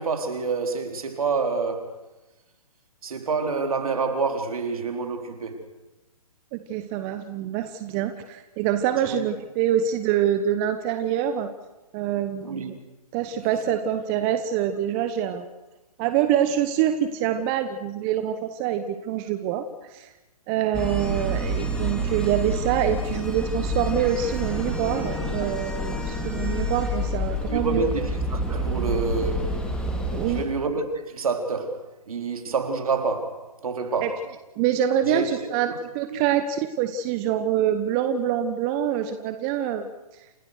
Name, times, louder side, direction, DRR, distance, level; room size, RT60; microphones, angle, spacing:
voice 1, 0.0-2.0 3.0-5.6 9.1-9.3 12.4-12.7 27.5-29.6 30.2-34.2 35.1-35.5 36.1-36.2, right 4 dB, 65° right, 3.7 m, -28 dB
voice 2, 6.5-11.5 11.9-12.7 13.1-15.5 16.0-20.1 20.5-27.8 30.1-30.4 34.0-34.1 34.6-39.9, right 10 dB, 25° right, 1.2 m, -25 dB
sound 1, 20.7-30.4, equal, 5° left, 2.8 m, -28 dB
29.0 x 17.0 x 6.6 m
hypercardioid pair, 135°, 19 cm